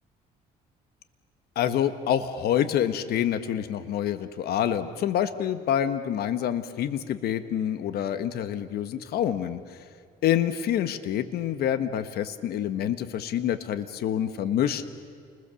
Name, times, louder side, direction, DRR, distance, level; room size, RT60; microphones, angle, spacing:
voice 1, 1.5-9.8 10.2-14.8, left 10 dB, 70° left, 11 dB, 1.3 m, -27 dB
29.5 x 21.0 x 7.0 m, 2.3 s
cardioid pair, 110°, 17 cm